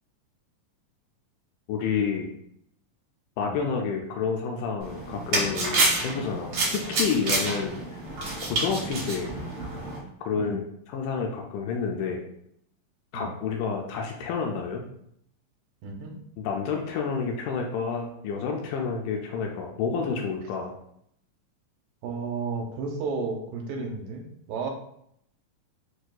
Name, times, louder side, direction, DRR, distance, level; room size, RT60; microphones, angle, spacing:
voice 1, 1.7-2.3 3.4-8.0 8.5-9.3 10.2-10.7 10.9-12.2 13.1-14.8 16.4-20.7, left 5 dB, 80° left, 1 dB, 1.9 m, -29 dB
sound 1, 4.8-10.0, right 2 dB, 60° right, 1.5 m, -28 dB
voice 2, 15.8-16.1 22.0-24.7, right 4 dB, 90° right, 2 dB, 2.3 m, -32 dB
6.2 x 2.6 x 2.3 m, 0.72 s
omnidirectional pair, 4.0 m